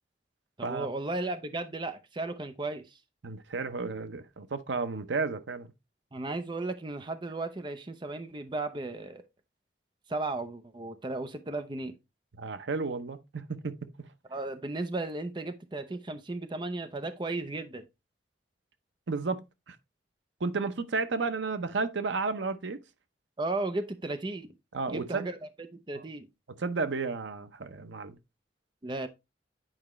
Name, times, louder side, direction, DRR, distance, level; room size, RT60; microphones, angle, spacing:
voice 1, 0.6-3.0 6.1-9.2 10.1-12.0 14.3-17.9 23.4-24.5 24.9-25.4 25.7-26.3 28.8-29.1, right 2 dB, 25° right, 0.6 m, -35 dB
voice 2, 3.2-5.7 12.3-13.7 19.1-19.8 20.4-22.8 24.7-25.3 25.9-26.0 26.6-28.2, right 4 dB, 90° right, 0.7 m, -32 dB
8.9 x 4.8 x 3.0 m
head